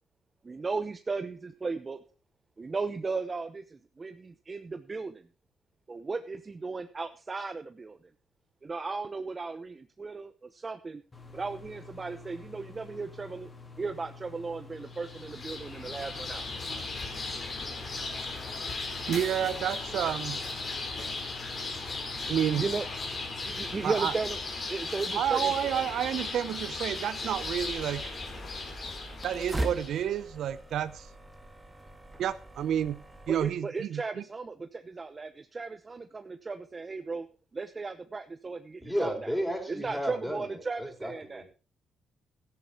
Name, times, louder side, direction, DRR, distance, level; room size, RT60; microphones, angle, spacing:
voice 1, 0.4-2.0 2.6-5.2 5.9-8.0 8.6-11.0 11.3-13.5 13.8-16.5 22.6-22.8 23.5-24.4 24.7-25.5 33.3-37.3 37.5-39.1 39.7-41.4, right 4 dB, 30° right, 9 dB, 0.8 m, -36 dB
sound 1, 11.1-24.0, left 4 dB, 25° left, 2.2 m, -49 dB
sound 2, 14.9-30.1, left 3 dB, 45° left, 4.3 m, -37 dB
voice 2, 19.1-20.4 22.3-22.7 23.8-24.1 25.1-28.0 29.2-31.1 32.2-33.0 33.3-34.2, right 10 dB, 75° right, 13 dB, 0.6 m, -30 dB
sound 3, 27.3-33.5, right 1 dB, 15° right, 1.9 m, -41 dB
voice 3, 38.8-41.5, equal, 5° left, 3 dB, 4.6 m, -33 dB
13.0 x 10.5 x 4.4 m, 0.35 s
cardioid pair, 90°, 0 cm